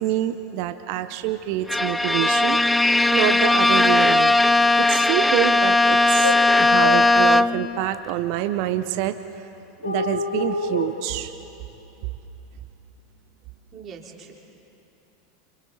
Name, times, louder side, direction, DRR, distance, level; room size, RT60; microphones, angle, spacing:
voice 1, 0.0-4.3 4.8-9.4 9.8-11.3, right 13 dB, 50° right, 10 dB, 0.8 m, -27 dB
Bowed string instrument, 1.7-7.8, left 2 dB, 5° left, 0.4 m, -18 dB
sound 1, 5.9-6.0 6.2-6.4 6.8-7.1 9.8-10.9, left 2 dB, 85° left, 1.4 m, -26 dB
voice 2, 13.7-14.3, right 6 dB, 35° right, -1 dB, 3.8 m, -41 dB
29.5 x 28.0 x 4.1 m, 2.9 s
figure-of-eight pair, 85°, 0 cm